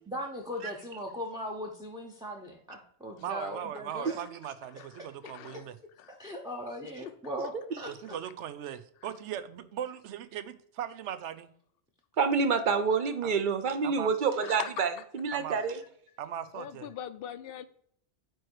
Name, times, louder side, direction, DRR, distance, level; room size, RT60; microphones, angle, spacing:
voice 1, 0.1-4.2 5.0-5.1 5.5-5.6 6.1-7.9, equal, 5° right, 2 dB, 0.7 m, -39 dB
voice 2, 3.2-5.8 7.9-11.5 13.2-13.3 13.8-14.1 15.3-15.6 16.2-16.9, right 10 dB, 90° right, 12 dB, 0.9 m, -39 dB
voice 3, 5.2-5.6 6.0-6.2 14.4-14.7 16.5-17.7, left 10 dB, 65° left, 13 dB, 0.7 m, -40 dB
voice 4, 12.2-15.8, right 5 dB, 50° right, 8 dB, 0.8 m, -27 dB
9.1 x 3.1 x 4.6 m, 0.64 s
omnidirectional pair, 1.2 m